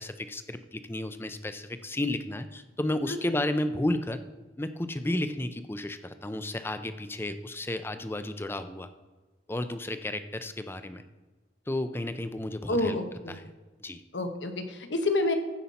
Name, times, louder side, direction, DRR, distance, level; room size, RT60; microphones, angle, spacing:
voice 1, 0.0-4.2 4.6-8.9 9.5-11.0 11.7-13.0 13.3-13.4 13.8-14.0, left 1 dB, 15° left, 10 dB, 0.5 m, -32 dB
voice 2, 3.1-3.4 12.7-13.4 14.1-15.4, left 2 dB, 85° left, 6 dB, 1.1 m, -29 dB
15.0 x 5.6 x 4.2 m, 1.3 s
head